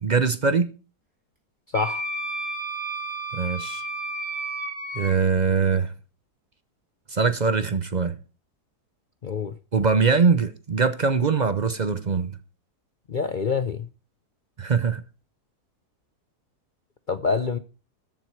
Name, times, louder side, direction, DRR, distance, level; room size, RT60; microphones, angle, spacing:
voice 1, 0.0-0.7 3.3-3.8 4.9-5.9 7.1-8.2 9.7-12.3 14.6-15.0, right 5 dB, 45° right, 0.6 m, -22 dB
voice 2, 1.7-2.0 9.2-9.5 13.1-13.9 17.1-17.6, left 5 dB, 55° left, 0.5 m, -26 dB
Wind instrument woodwind instrument, 1.7-5.1, right 2 dB, 20° right, 4.5 m, -32 dB
13.5 x 7.9 x 4.6 m
omnidirectional pair, 1.7 m